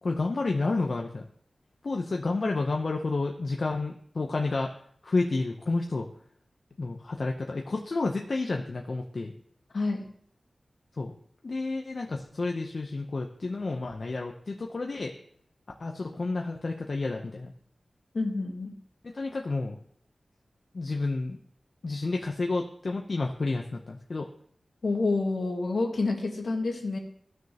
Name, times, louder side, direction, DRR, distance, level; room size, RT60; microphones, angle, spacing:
voice 1, 0.0-1.2 1.8-6.1 6.8-9.3 11.0-11.1 11.4-15.1 15.8-17.5 19.0-19.8 20.7-21.4 21.8-24.3, left 3 dB, 55° left, 2 dB, 0.7 m, -30 dB
voice 2, 9.7-10.1 18.1-18.7 24.8-27.0, left 3 dB, 70° left, 1 dB, 1.7 m, -28 dB
15.5 x 6.3 x 2.9 m, 0.63 s
wide cardioid pair, 100°, 0 cm